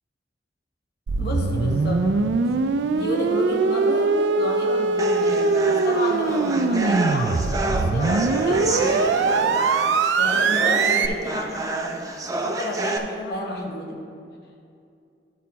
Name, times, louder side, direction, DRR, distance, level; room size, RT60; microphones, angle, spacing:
sound 1, 1.1-11.1, right 4 dB, 85° right, 0.4 m, -22 dB
voice 1, 1.2-2.5 2.9-9.7 10.2-14.0, left 1 dB, 60° left, 0 dB, 0.9 m, -31 dB
sound 2, 5.0-13.0, right 2 dB, 20° right, 0.6 m, -28 dB
13.0 x 4.4 x 4.1 m, 2.5 s
head